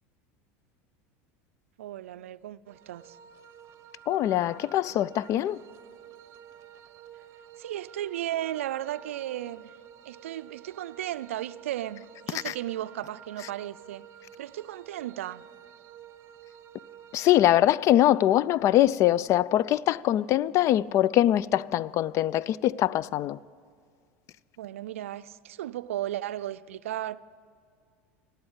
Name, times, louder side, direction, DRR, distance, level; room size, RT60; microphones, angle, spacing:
voice 1, 1.8-3.2 7.6-9.7 10.1-14.1 14.4-15.4 24.6-27.2, right 13 dB, 90° right, 0.4 m, -35 dB
sound 1, 2.7-17.5, right 9 dB, 45° right, 0.9 m, -51 dB
voice 2, 4.1-5.6 12.4-12.5 17.1-23.4, left 13 dB, 45° left, 0.3 m, -23 dB
18.0 x 7.9 x 8.0 m
supercardioid pair, 105°, 7 cm